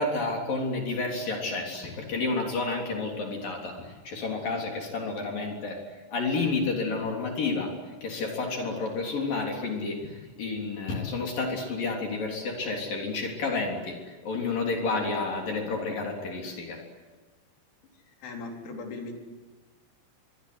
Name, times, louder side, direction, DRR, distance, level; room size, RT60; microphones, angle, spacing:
voice 1, 0.0-5.8 6.1-7.7 8.0-16.8, left 3 dB, 50° left, 1 dB, 4.9 m, -30 dB
voice 2, 17.9-19.1, left 3 dB, 85° left, 2 dB, 6.2 m, -39 dB
24.5 x 23.0 x 9.6 m, 1.2 s
omnidirectional pair, 5.4 m